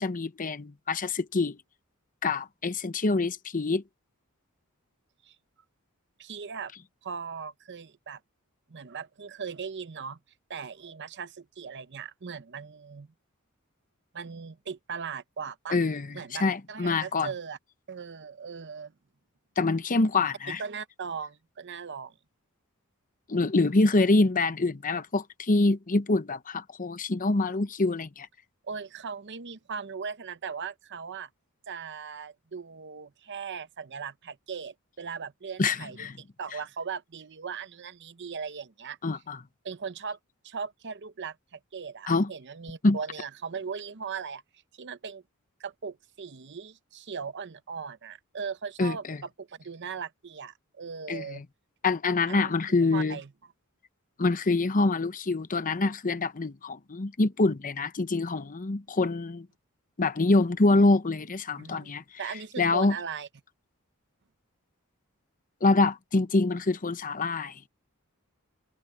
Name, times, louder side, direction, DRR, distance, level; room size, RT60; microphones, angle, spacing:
voice 1, 0.0-1.6 2.2-3.8 15.7-17.3 19.6-20.6 23.3-28.3 35.6-36.2 39.0-39.4 42.1-42.3 42.8-43.0 48.8-49.2 51.1-51.4 51.8-53.2 54.2-59.5 60.0-62.0 62.6-62.9 65.6-67.6, left 3 dB, 40° left, 0.8 m, -25 dB
voice 2, 6.2-6.7 7.0-8.2 8.7-10.2 10.5-13.1 14.1-15.8 16.1-16.4 16.7-17.6 17.9-18.9 20.6-22.2 28.7-31.3 31.7-39.0 39.6-40.2 40.4-44.4 44.7-45.2 45.6-49.0 49.4-51.4 52.3-52.5 52.9-53.3 61.6-61.9 62.2-63.3, right 6 dB, 55° right, 0.8 m, -38 dB
head